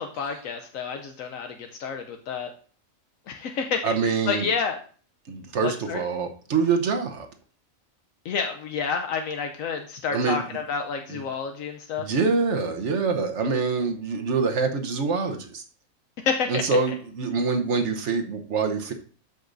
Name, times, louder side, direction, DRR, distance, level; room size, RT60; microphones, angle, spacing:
voice 1, 0.0-2.5 3.3-4.8 5.6-6.0 8.2-12.1 16.2-16.6, left 6 dB, 80° left, 5 dB, 1.0 m, -29 dB
voice 2, 3.8-4.5 5.3-7.3 10.1-10.4 11.1-11.2 12.0-15.6 16.5-18.9, right 4 dB, 60° right, 5 dB, 1.2 m, -25 dB
13.0 x 5.4 x 2.6 m, 0.42 s
omnidirectional pair, 1.4 m